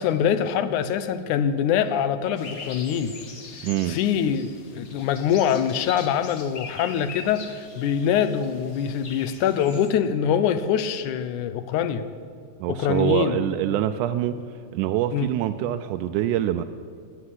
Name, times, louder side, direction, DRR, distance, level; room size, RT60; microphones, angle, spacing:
voice 1, 0.0-3.2 3.9-12.1 12.7-13.4 15.1-15.3, left 8 dB, 85° left, 12 dB, 2.2 m, -24 dB
sound 1, 2.4-9.9, left 4 dB, 50° left, 1.0 m, -42 dB
voice 2, 3.6-4.0 12.6-14.4 14.7-16.6, right 12 dB, 85° right, 8 dB, 2.1 m, -25 dB
19.0 x 7.5 x 9.7 m, 2.1 s
omnidirectional pair, 3.5 m